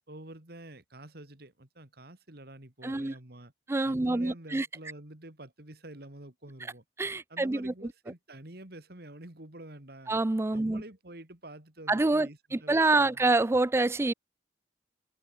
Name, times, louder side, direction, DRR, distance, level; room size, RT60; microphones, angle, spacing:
voice 1, 0.1-3.5 3.8-6.8 7.3-10.1 10.5-13.2, right 1 dB, 60° right, 3.0 m, -48 dB
voice 2, 2.8-3.1 3.7-4.7 7.0-7.7 10.1-10.8 11.9-14.1, right 2 dB, 15° right, 0.4 m, -26 dB
head